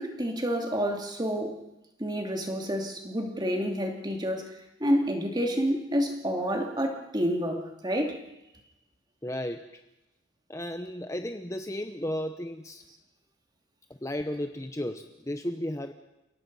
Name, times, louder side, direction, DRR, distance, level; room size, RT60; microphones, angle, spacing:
voice 1, 0.0-1.6 2.0-8.2, equal, 20° right, 3 dB, 2.6 m, -29 dB
voice 2, 9.2-9.8 10.5-12.8 13.9-15.9, left 1 dB, 15° left, 7 dB, 0.8 m, -34 dB
30.0 x 17.5 x 5.5 m, 0.95 s
head